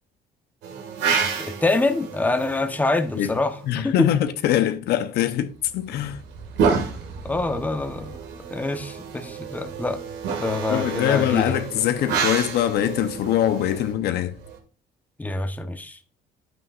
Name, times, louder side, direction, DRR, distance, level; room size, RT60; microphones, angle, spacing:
sound 1, 0.6-3.8 5.6-14.6, right 6 dB, 85° right, 2.1 m, -30 dB
voice 1, 1.4-4.1 7.2-8.2 8.5-10.0 10.4-11.5 15.2-16.0, left 2 dB, 10° left, 1.0 m, -25 dB
voice 2, 3.7-6.2 10.7-14.4, left 11 dB, 75° left, 0.9 m, -23 dB
9.5 x 9.3 x 2.5 m
cardioid pair, 110°, 17 cm